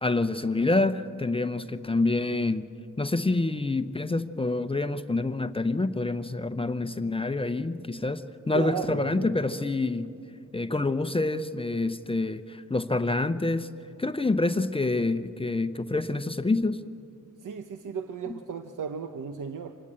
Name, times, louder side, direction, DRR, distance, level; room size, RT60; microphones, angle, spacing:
voice 1, 0.0-2.7 3.0-10.1 10.5-13.7 14.0-16.8 18.3-18.4, left 2 dB, 20° left, 10 dB, 0.7 m, -27 dB
voice 2, 8.5-9.4 17.4-19.8, right 6 dB, 85° right, 7 dB, 1.0 m, -35 dB
26.5 x 19.5 x 8.8 m, 2.5 s
wide cardioid pair, 115°, 31 cm